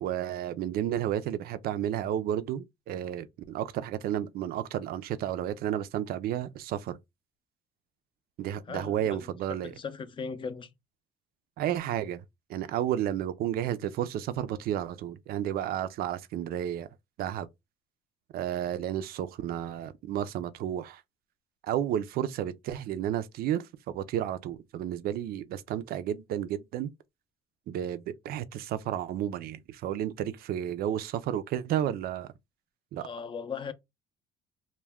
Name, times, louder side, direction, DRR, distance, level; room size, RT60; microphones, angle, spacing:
voice 1, 0.0-7.0 8.4-9.7 11.6-12.2 12.5-16.9 17.2-17.5 18.3-21.0 21.6-23.6 23.9-26.9 27.7-32.3 32.9-33.1, right 11 dB, 65° right, 0.4 m, -32 dB
voice 2, 8.7-9.3 9.6-10.7 33.0-33.7, left 5 dB, 30° left, 0.4 m, -38 dB
2.2 x 2.2 x 3.4 m
cardioid pair, 110°, 17 cm